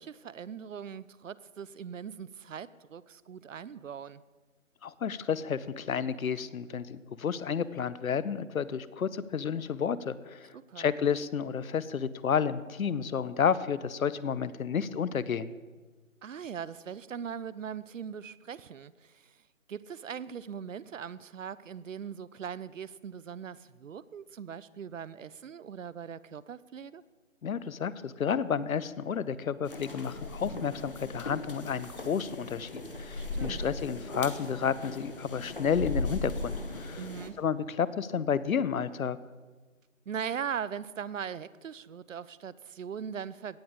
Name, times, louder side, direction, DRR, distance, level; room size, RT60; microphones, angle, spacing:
voice 1, 0.0-4.2 10.5-10.9 16.2-19.4 19.7-27.0 33.1-33.7 37.0-37.4 40.1-43.6, right 7 dB, 70° right, 19 dB, 0.5 m, -40 dB
voice 2, 4.8-15.5 27.4-37.0 37.4-39.2, left 7 dB, 90° left, 17 dB, 0.7 m, -31 dB
sound 1, 29.6-37.3, left 2 dB, 40° left, 0.9 m, -38 dB
16.5 x 6.9 x 3.7 m, 1.3 s
figure-of-eight pair, 175°, 41 cm